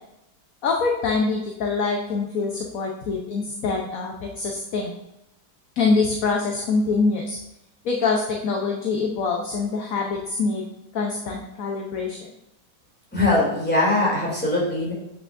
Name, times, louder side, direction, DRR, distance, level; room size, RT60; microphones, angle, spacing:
voice 1, 0.6-5.0 5.8-7.4 7.8-10.7 10.9-12.2, left 4 dB, 60° left, 1 dB, 1.2 m, -24 dB
voice 2, 13.1-14.9, left 2 dB, 5° left, -6 dB, 2.5 m, -21 dB
8.0 x 6.2 x 2.6 m, 0.89 s
omnidirectional pair, 1.8 m